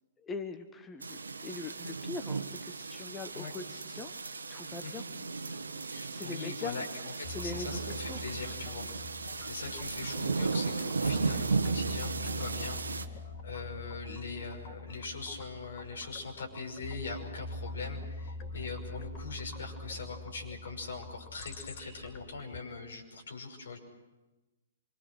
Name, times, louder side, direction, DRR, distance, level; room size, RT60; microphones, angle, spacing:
voice 1, 0.2-4.1 4.5-5.0 6.0-6.8 7.3-8.2, left 3 dB, 15° left, 8 dB, 1.2 m, -42 dB
sound 1, 1.0-13.1, right 4 dB, 80° right, 1.3 m, -35 dB
voice 2, 5.9-23.8, left 4 dB, 70° left, 2 dB, 5.8 m, -42 dB
sound 2, 7.2-22.6, left 2 dB, 35° left, 4.3 m, -44 dB
26.5 x 24.5 x 6.4 m, 1.1 s
figure-of-eight pair, 120°, 0 cm